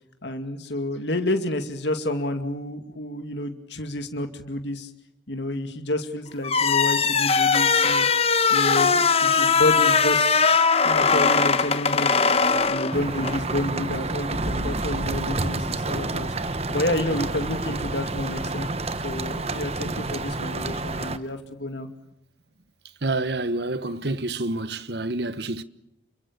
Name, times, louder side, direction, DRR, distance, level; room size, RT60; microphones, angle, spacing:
voice 1, 0.2-4.9 5.3-8.1 8.5-10.3 10.8-12.1 12.7-18.7 19.0-21.9, left 1 dB, 70° left, 2.4 m, -29 dB
sound 1, 6.4-13.4, left 5 dB, 30° left, 1.2 m, -20 dB
sound 2, 12.9-21.2, right 2 dB, 35° right, 1.2 m, -29 dB
voice 2, 23.0-25.6, right 2 dB, 60° right, 1.2 m, -28 dB
29.5 x 24.0 x 6.9 m
head